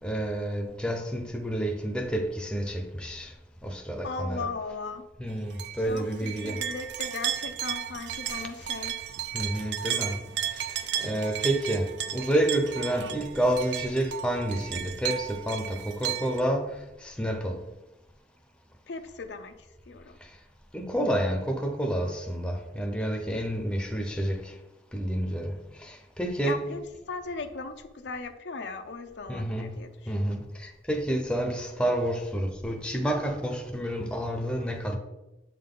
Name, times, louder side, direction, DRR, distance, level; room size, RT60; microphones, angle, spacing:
voice 1, 0.0-3.3 3.6-4.5 5.2-6.6 8.3-8.4 9.3-17.7 20.2-20.3 20.7-24.6 24.9-26.7 29.3-35.0, right 1 dB, 5° left, 0.7 m, -29 dB
voice 2, 4.0-5.0 5.9-8.9 18.9-19.5 19.9-20.2 26.4-26.8 27.1-30.4, left 4 dB, 85° left, 0.6 m, -37 dB
sound 1, 5.6-16.4, right 10 dB, 85° right, 0.4 m, -34 dB
7.5 x 3.8 x 3.8 m
head